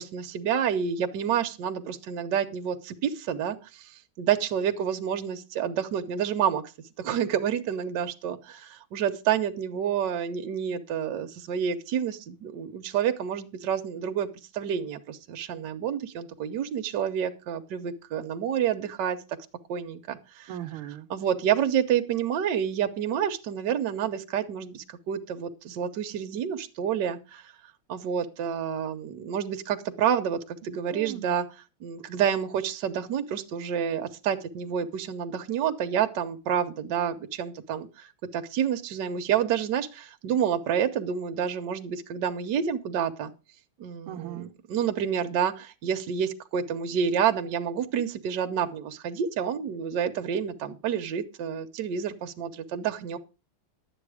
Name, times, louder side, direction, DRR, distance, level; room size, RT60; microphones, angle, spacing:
voice 1, 0.0-3.9 4.2-6.6 7.0-14.3 14.5-19.2 19.7-20.5 21.1-27.4 27.9-31.5 31.8-43.3 43.8-53.2, right 8 dB, 60° right, 7 dB, 1.4 m, -29 dB
voice 2, 20.5-21.1 30.9-31.3 44.1-44.5, right 11 dB, 80° right, 12 dB, 1.6 m, -38 dB
11.0 x 8.6 x 4.9 m, 0.30 s
omnidirectional pair, 2.3 m